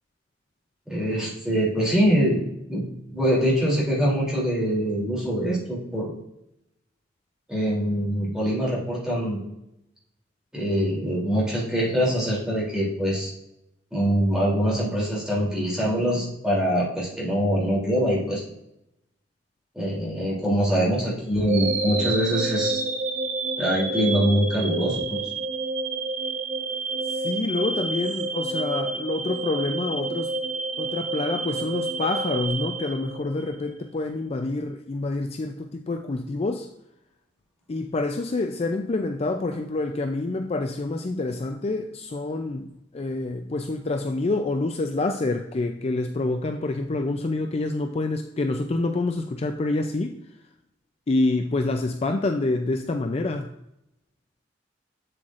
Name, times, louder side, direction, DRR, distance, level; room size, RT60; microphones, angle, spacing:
voice 1, 0.9-2.4 2.7-6.1 7.5-9.4 10.5-13.3 13.9-18.4 19.7-22.8 23.6-25.3, equal, 5° right, -6 dB, 2.9 m, -24 dB
sound 1, 21.5-33.6, right 3 dB, 40° right, 1.0 m, -29 dB
voice 2, 27.1-30.3 30.8-36.7 37.7-50.2 51.1-53.5, left 2 dB, 35° left, 6 dB, 0.4 m, -27 dB
7.8 x 7.7 x 2.5 m, 0.83 s
head